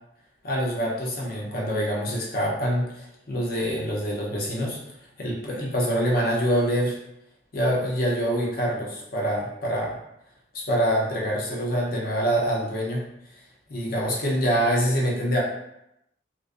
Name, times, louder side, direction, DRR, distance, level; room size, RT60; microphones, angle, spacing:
voice 1, 0.4-4.8 5.2-7.0 7.5-10.0 10.5-13.0 13.7-15.4, equal, 55° left, -3 dB, 0.6 m, -25 dB
2.5 x 2.1 x 2.4 m, 0.81 s
head